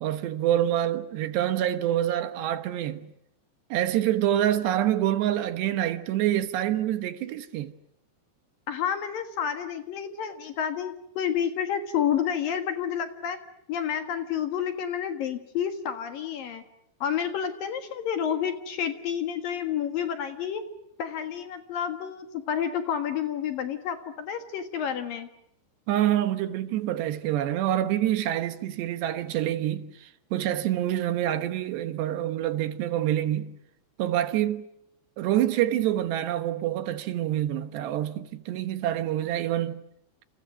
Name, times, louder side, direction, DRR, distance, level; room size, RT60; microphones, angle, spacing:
voice 1, 0.0-3.1 3.7-7.7 25.9-33.6 34.0-34.7 35.2-39.8, right 12 dB, 70° right, 3.2 m, -26 dB
voice 2, 8.7-13.4 13.7-16.6 17.0-20.6 21.0-25.3, left 8 dB, 60° left, 2.9 m, -30 dB
29.0 x 29.0 x 6.3 m
omnidirectional pair, 5.3 m